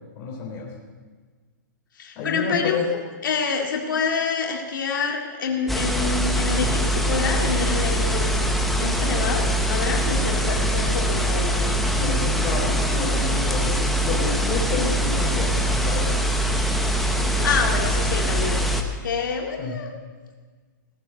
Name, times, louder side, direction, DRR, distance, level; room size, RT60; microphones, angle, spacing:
voice 1, 0.2-0.7 2.2-2.8 11.8-16.2 17.1-17.5 19.6-19.8, left 4 dB, 25° left, -2 dB, 3.9 m, -30 dB
voice 2, 2.0-2.8 3.2-11.8 17.2-18.7 19.0-19.9, left 5 dB, 80° left, 1 dB, 2.1 m, -27 dB
sound 1, 5.7-18.8, right 1 dB, ahead, 0.8 m, -23 dB
18.0 x 8.5 x 8.0 m, 1.5 s
hypercardioid pair, 170°, 11 cm